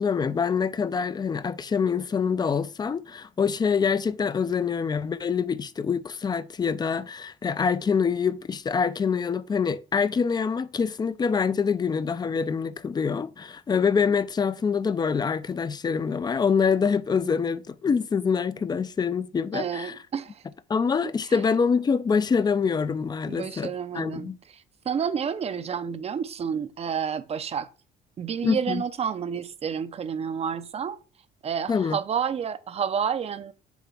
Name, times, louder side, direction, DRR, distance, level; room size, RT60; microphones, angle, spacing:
voice 1, 0.0-19.9 20.7-24.4 28.4-28.8 31.7-32.0, left 6 dB, 25° left, 0.4 m, -25 dB
voice 2, 19.5-20.4 21.0-21.4 23.3-27.7 28.2-31.0 31.4-33.5, right 7 dB, 35° right, 0.6 m, -30 dB
7.0 x 2.9 x 5.8 m
cardioid pair, 110°, 17 cm